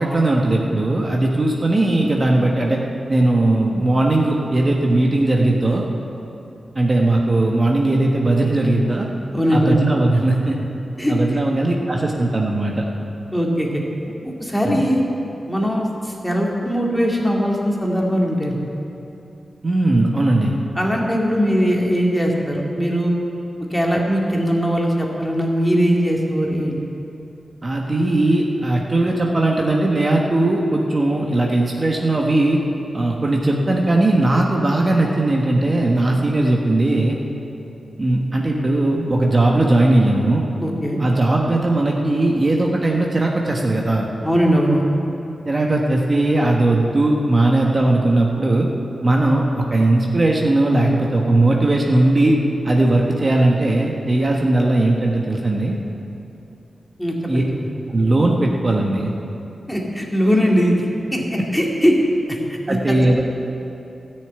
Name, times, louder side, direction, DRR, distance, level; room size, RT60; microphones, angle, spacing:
voice 1, 0.0-2.8 3.1-5.8 6.7-9.1 9.5-10.6 11.1-12.9 14.6-14.8 19.6-20.5 27.6-32.6 32.9-37.2 38.0-40.5 41.0-44.1 45.5-48.7 49.0-52.4 52.6-55.8 57.3-57.4 57.9-59.1 62.7-63.2, right 2 dB, 35° right, -1 dB, 1.3 m, -18 dB
voice 2, 9.3-9.8 11.0-11.1 13.3-13.8 14.2-15.0 15.5-18.6 20.8-23.1 23.7-26.8 40.6-41.0 44.2-44.8 57.0-57.4 59.7-60.8 61.1-62.0 62.3-63.0, equal, 10° left, -2 dB, 2.2 m, -20 dB
13.5 x 6.7 x 9.2 m, 2.8 s
wide cardioid pair, 80°, 0 cm